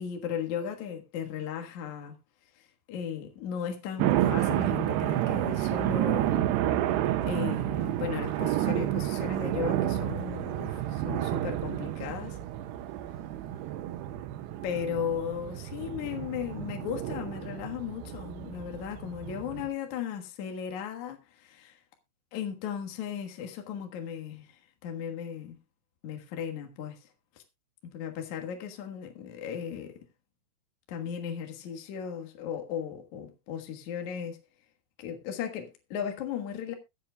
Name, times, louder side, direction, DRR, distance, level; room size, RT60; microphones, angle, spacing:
voice 1, 0.0-2.1 2.6-6.6 7.3-12.4 14.6-21.8 22.3-25.6 26.0-27.1 27.4-27.5 27.9-29.9 30.9-34.4 35.0-36.7, left 8 dB, 60° left, 2.4 m, -36 dB
sound 1, 4.0-19.7, right 13 dB, 85° right, 2.9 m, -30 dB
22.5 x 7.6 x 2.3 m
omnidirectional pair, 4.7 m